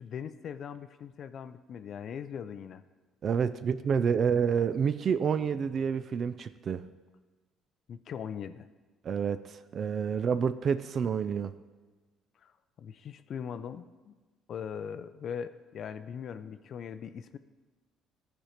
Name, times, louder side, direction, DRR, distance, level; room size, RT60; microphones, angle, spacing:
voice 1, 0.0-2.8 7.9-8.7 12.4-12.5 12.8-14.1 14.5-17.4, left 7 dB, 55° left, 12 dB, 0.4 m, -40 dB
voice 2, 3.2-6.8 9.0-11.5, right 7 dB, 50° right, 13 dB, 0.3 m, -28 dB
12.5 x 4.4 x 5.1 m, 1.2 s
cardioid pair, 95°, 0 cm